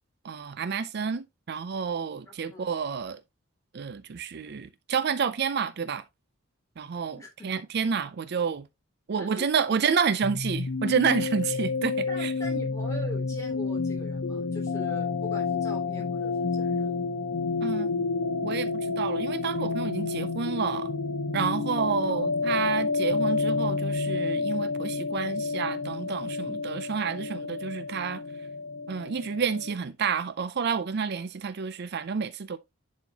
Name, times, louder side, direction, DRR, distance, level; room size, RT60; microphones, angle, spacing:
voice 1, 0.2-3.2 3.7-6.0 6.8-7.2 7.4-8.7 9.1-12.3 17.6-18.0 18.4-20.9 21.3-28.2 28.9-32.6, right 6 dB, 55° right, 0.4 m, -29 dB
voice 2, 2.3-2.8 7.2-7.5 9.2-9.8 12.1-17.1 22.0-22.3, equal, 15° left, 3.1 m, -42 dB
sound 1, 10.2-29.7, left 4 dB, 80° left, 0.8 m, -29 dB
10.5 x 4.4 x 2.8 m
head